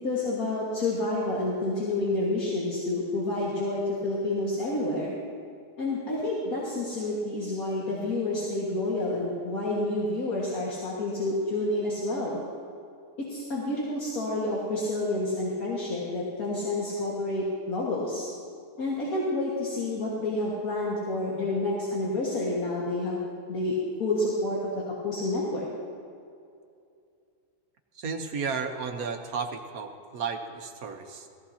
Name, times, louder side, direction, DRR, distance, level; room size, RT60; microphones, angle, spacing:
voice 1, 0.0-5.1 5.8-12.4 13.3-18.3 18.8-25.7, left 2 dB, 65° left, -6 dB, 2.3 m, -29 dB
voice 2, 27.9-31.3, right 5 dB, 70° right, 4 dB, 1.4 m, -33 dB
18.0 x 14.5 x 2.8 m, 2.4 s
omnidirectional pair, 1.7 m